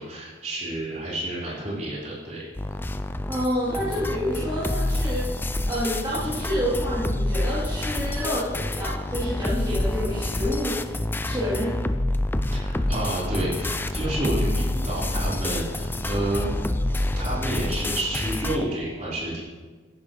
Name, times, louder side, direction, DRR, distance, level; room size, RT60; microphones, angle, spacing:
voice 1, 0.0-2.4 12.5-16.5 16.9-19.4, right 1 dB, 40° right, -7 dB, 4.5 m, -30 dB
sound 1, 2.5-18.7, left 1 dB, 10° left, 0.4 m, -27 dB
voice 2, 3.3-5.2 5.7-11.0 11.2-11.8, equal, 25° right, -12 dB, 3.4 m, -28 dB
15.0 x 11.5 x 3.3 m, 1.4 s
head